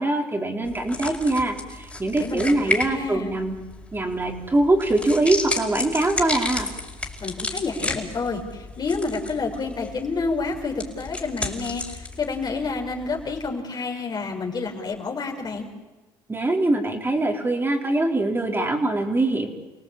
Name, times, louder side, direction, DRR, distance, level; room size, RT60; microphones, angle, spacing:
voice 1, 0.0-3.5 3.9-6.7 16.3-19.5, right 2 dB, 20° right, 1 dB, 4.4 m, -23 dB
sound 1, 0.6-13.5, left 2 dB, 10° left, 5.2 m, -33 dB
voice 2, 2.2-3.4 7.2-15.7, left 4 dB, 40° left, 1 dB, 5.4 m, -29 dB
29.0 x 18.0 x 8.8 m, 1.2 s
supercardioid pair, 70°, 10 cm